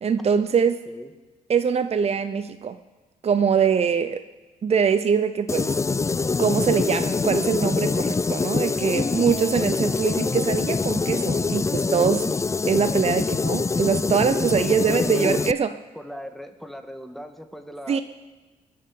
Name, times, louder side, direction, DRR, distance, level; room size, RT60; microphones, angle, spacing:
voice 1, 0.0-0.8 1.5-2.8 3.2-4.2 4.6-5.7 6.4-12.4 12.7-15.7 17.9-18.0, right 6 dB, 45° right, 11 dB, 0.7 m, -23 dB
sound 1, 5.5-15.5, left 4 dB, 20° left, 0.3 m, -24 dB
voice 2, 14.9-15.5 16.0-18.0, equal, ahead, 6 dB, 1.8 m, -39 dB
21.5 x 7.8 x 7.0 m, 1.2 s
supercardioid pair, 60°, 15 cm